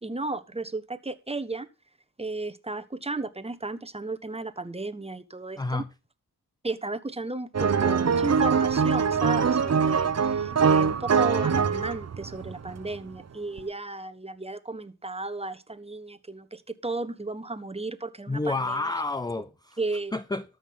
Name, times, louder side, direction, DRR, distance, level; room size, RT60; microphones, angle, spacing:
voice 1, 0.0-1.7 2.2-5.8 6.6-19.0 19.8-20.1, right 3 dB, 15° right, 1.2 m, -34 dB
voice 2, 5.6-5.9 18.3-19.8 20.1-20.4, left 3 dB, 10° left, 0.5 m, -29 dB
sound 1, 7.5-13.0 13.6-13.7, right 6 dB, 40° right, 1.0 m, -23 dB
13.0 x 5.8 x 5.7 m
cardioid pair, 60°, 38 cm